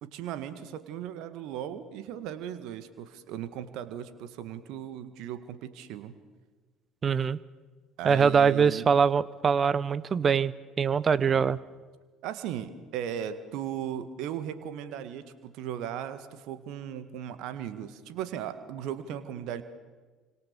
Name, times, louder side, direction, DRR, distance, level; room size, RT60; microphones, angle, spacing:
voice 1, 0.0-6.2 8.0-8.9 11.3-11.5 12.2-19.6, right 10 dB, 55° right, 11 dB, 1.9 m, -37 dB
voice 2, 7.0-7.4 8.0-11.6, right 6 dB, 35° right, 19 dB, 1.0 m, -23 dB
29.5 x 25.5 x 7.0 m, 1.4 s
figure-of-eight pair, 55°, 0 cm